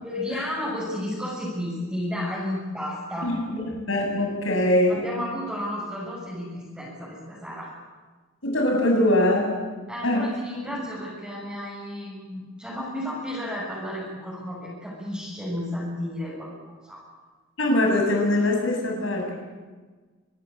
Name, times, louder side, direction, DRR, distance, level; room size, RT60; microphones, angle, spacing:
voice 1, 0.0-3.3 4.9-7.7 9.9-17.0, left 1 dB, 5° right, -7 dB, 7.0 m, -32 dB
voice 2, 3.2-5.0 8.4-9.6 10.0-10.3 10.7-10.8 17.6-19.3, left 1 dB, 75° left, 1 dB, 7.0 m, -22 dB
25.5 x 19.0 x 8.6 m, 1.4 s
head